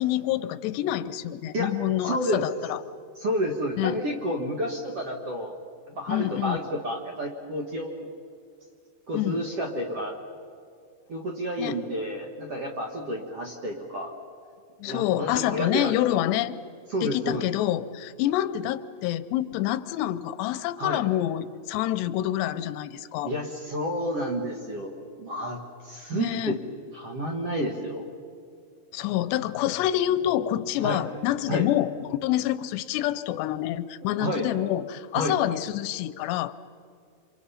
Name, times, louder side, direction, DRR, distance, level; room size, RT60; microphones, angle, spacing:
voice 1, 0.0-2.8 3.8-4.0 6.1-6.6 9.1-9.4 11.6-11.8 14.8-16.6 17.0-23.3 26.1-26.6 28.9-31.9 32.2-36.5, left 13 dB, 90° left, 14 dB, 2.9 m, -27 dB
voice 2, 2.0-2.4 3.2-5.5 6.0-8.1 9.1-10.2 11.1-14.1 14.9-16.0 16.9-17.5 20.8-21.0 23.2-26.6 26.9-28.1 30.8-31.0 31.5-31.7 34.0-34.5 35.1-35.4, equal, 55° right, 1 dB, 1.8 m, -30 dB
28.0 x 26.5 x 5.7 m, 2.3 s
omnidirectional pair, 4.8 m